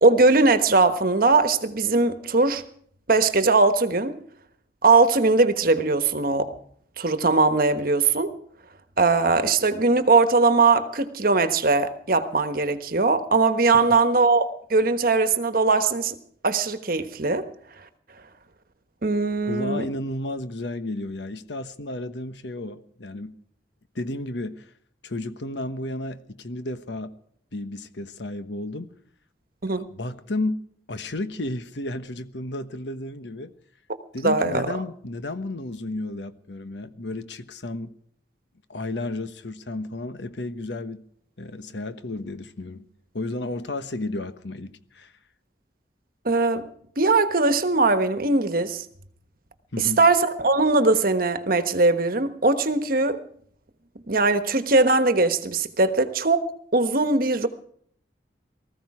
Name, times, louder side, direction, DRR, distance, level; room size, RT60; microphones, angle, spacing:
voice 1, 0.0-2.6 3.1-4.2 4.8-6.5 7.0-8.3 9.0-16.1 16.4-17.5 19.0-19.8 29.6-29.8 34.2-34.7 46.2-46.7 47.0-48.8 49.8-53.2 54.1-56.4 56.7-57.5, right 3 dB, 50° right, 1.2 m, -20 dB
voice 2, 19.5-23.3 23.9-24.7 25.0-27.1 27.5-28.9 29.7-30.6 30.9-33.5 34.1-37.9 38.7-41.0 41.4-42.9 43.1-45.1 49.7-50.0, left 2 dB, 70° left, 1.2 m, -32 dB
19.5 x 14.5 x 4.9 m
head